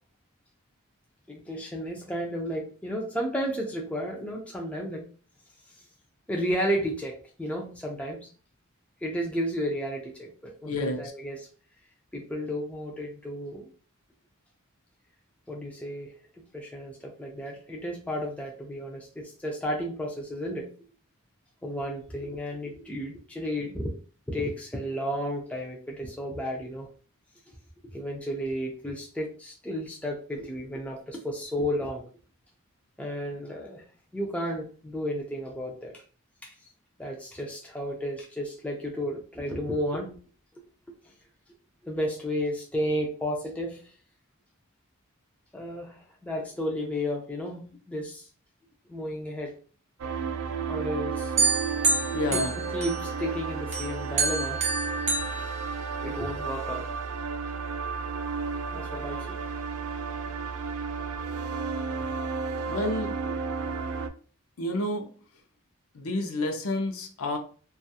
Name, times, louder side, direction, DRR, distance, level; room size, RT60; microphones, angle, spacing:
voice 1, 1.3-5.0 6.3-8.3 9.0-11.5 12.1-13.7 15.5-16.1 16.5-20.7 21.6-23.9 24.3-26.9 27.8-32.0 33.0-33.8 34.1-35.9 36.4-36.5 37.0-40.2 41.8-43.8 45.5-48.3 48.9-49.5 50.7-51.3 52.3-54.6 55.9-56.9 58.7-59.4, equal, 5° left, -1 dB, 0.3 m, -33 dB
voice 2, 10.6-11.0 52.1-52.5 62.7-63.2 64.6-65.1 65.9-67.4, left 1 dB, 70° left, 4 dB, 0.6 m, -29 dB
sound 1, 50.0-64.1, right 5 dB, 70° right, 0.3 m, -33 dB
sound 2, 51.4-53.3 53.7-56.3, right 4 dB, 30° right, 0.7 m, -28 dB
2.4 x 2.3 x 2.7 m, 0.40 s
head